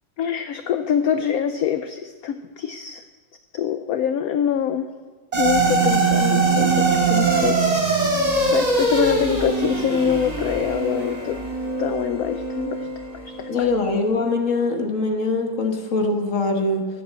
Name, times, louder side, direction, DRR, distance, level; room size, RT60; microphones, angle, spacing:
voice 1, 0.2-3.0 3.5-4.9 5.4-8.1 8.5-11.4 11.8-12.9 13.1-13.7, left 9 dB, 70° left, 9 dB, 0.9 m, -25 dB
sound 1, 5.3-13.8, right 3 dB, 20° right, 1.7 m, -22 dB
voice 2, 13.5-16.9, left 3 dB, 45° left, 4 dB, 1.5 m, -22 dB
13.0 x 7.8 x 7.6 m, 1.4 s
omnidirectional pair, 2.0 m